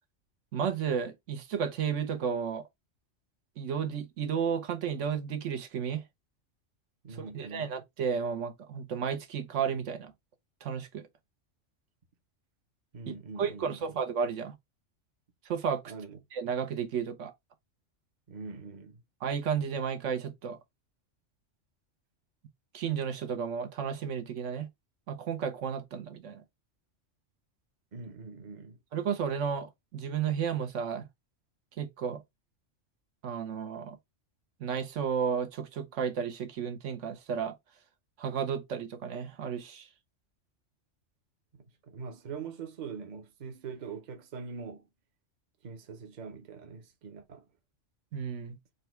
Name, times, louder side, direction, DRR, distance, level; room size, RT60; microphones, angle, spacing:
voice 1, 0.5-2.7 3.6-6.0 7.1-10.1 10.6-11.1 13.1-14.6 15.4-15.8 16.3-17.3 19.2-20.6 22.7-24.7 25.1-26.4 28.9-31.1 31.8-32.2 33.2-34.0 34.6-37.6 38.2-39.9 48.1-48.6, right 7 dB, 80° right, 1.1 m, -33 dB
voice 2, 7.0-7.7 12.9-13.7 15.9-16.2 18.3-19.0 27.9-28.8 41.5-44.8 45.6-47.5, right 5 dB, 45° right, 0.7 m, -43 dB
4.0 x 2.3 x 4.3 m
omnidirectional pair, 1.3 m